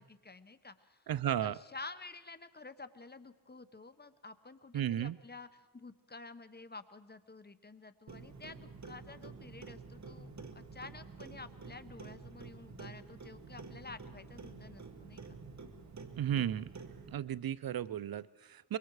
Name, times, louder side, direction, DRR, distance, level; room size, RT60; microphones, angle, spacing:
voice 1, 0.0-15.4, left 3 dB, 25° left, 12 dB, 1.1 m, -50 dB
voice 2, 1.1-1.6 4.7-5.2 16.2-16.7 17.1-18.8, right 10 dB, 65° right, 19 dB, 0.6 m, -34 dB
Clock, 8.1-17.2, right 4 dB, 45° right, 1.8 m, -49 dB
25.0 x 22.5 x 4.8 m, 1.1 s
cardioid pair, 80°, 39 cm